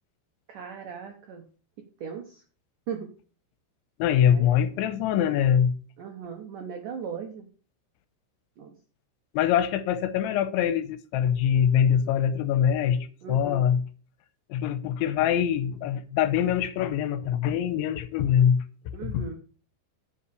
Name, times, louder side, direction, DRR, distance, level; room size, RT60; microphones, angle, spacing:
voice 1, 0.5-1.5 2.0-2.4 2.9-3.1 4.3-4.5 6.0-7.5 8.6-8.7 13.2-13.6 18.9-19.4, right 7 dB, 80° right, 1.8 m, -38 dB
voice 2, 4.0-5.8 9.3-13.9 14.5-19.3, left 9 dB, 85° left, 3.1 m, -24 dB
10.0 x 5.7 x 8.4 m
omnidirectional pair, 5.5 m